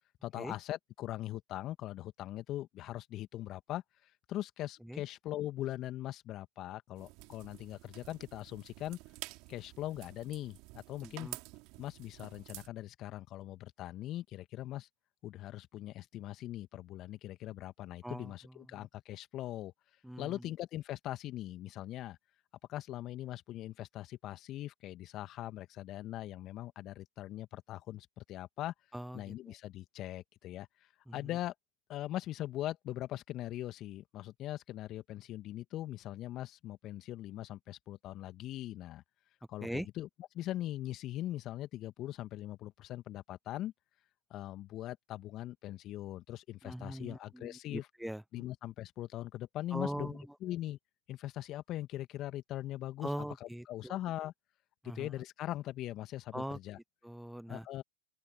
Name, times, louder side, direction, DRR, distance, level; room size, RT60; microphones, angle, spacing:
voice 1, 0.2-9.0 9.5-11.3 11.8-14.9 15.2-19.7 20.2-22.2 22.7-28.7 29.1-31.5 31.9-39.0 39.5-40.1 40.3-43.7 44.3-47.9 48.3-50.8 51.1-53.1 53.4-54.3 54.8-56.8 57.5-57.8, left 14 dB, 40° left, 1.9 m, -41 dB
sound 1, 6.9-12.7, right 25 dB, 50° right, 3.8 m, -50 dB
voice 2, 11.0-11.4 18.0-18.3 18.7-18.9 20.0-20.5 28.9-29.3 31.1-31.3 39.6-39.9 46.6-48.4 49.7-50.2 53.0-54.0 54.8-55.1 56.3-56.6 57.0-57.7, equal, ahead, 0.4 m, -41 dB
open air
hypercardioid pair, 90°, 0 cm